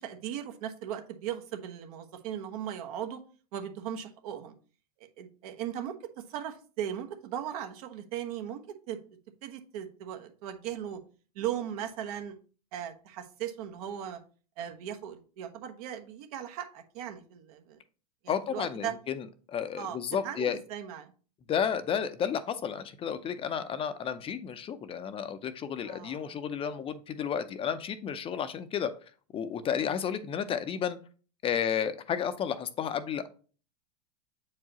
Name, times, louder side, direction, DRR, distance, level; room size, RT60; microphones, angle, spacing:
voice 1, 0.0-3.2 3.5-4.5 5.2-5.9 6.3-8.6 8.9-9.0 9.4-11.0 11.3-12.4 12.7-14.2 14.6-17.8 18.2-18.9 19.8-20.0 20.2-21.1 25.8-26.3 29.7-29.9, right 10 dB, 60° right, 6 dB, 1.1 m, -38 dB
voice 2, 18.3-20.6 21.5-28.9 29.3-31.0 31.4-33.3, left 8 dB, 25° left, 11 dB, 0.6 m, -32 dB
7.5 x 4.7 x 2.9 m, 0.39 s
hypercardioid pair, 110°, 21 cm